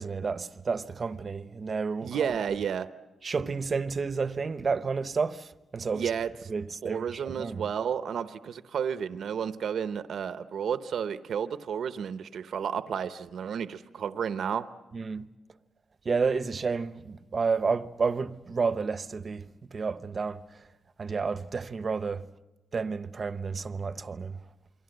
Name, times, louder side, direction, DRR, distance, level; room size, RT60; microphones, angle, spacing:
voice 1, 0.0-2.6 3.2-6.1 6.5-7.6 14.9-15.2 16.0-20.7 21.0-22.3 22.7-24.4, right 5 dB, 35° right, 0.8 m, -31 dB
voice 2, 2.0-2.9 5.9-6.3 6.8-14.6, right 7 dB, 70° right, 0.8 m, -32 dB
28.5 x 23.5 x 7.9 m
wide cardioid pair, 140°, 0 cm